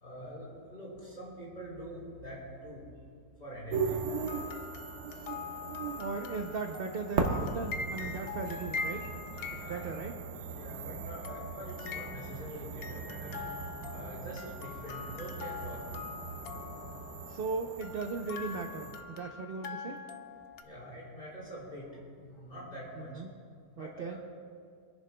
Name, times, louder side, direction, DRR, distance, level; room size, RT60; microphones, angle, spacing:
voice 1, 0.0-2.8 3.4-4.0 9.5-9.8 10.5-13.3 13.9-15.8 20.6-21.9 22.2-23.1 23.8-24.3, right 1 dB, 35° left, -7 dB, 4.1 m, -44 dB
sound 1, 3.7-19.0, right 4 dB, 80° right, 1.7 m, -39 dB
sound 2, 4.1-10.4 11.2-12.5 12.8-17.4 17.8-20.6, left 5 dB, 75° left, 0.5 m, -43 dB
voice 2, 5.8-9.1 9.5-10.1 17.3-20.0 22.9-23.3 23.8-24.2, right 4 dB, 55° right, 4 dB, 0.6 m, -38 dB
26.5 x 10.5 x 2.2 m, 2.2 s
omnidirectional pair, 1.7 m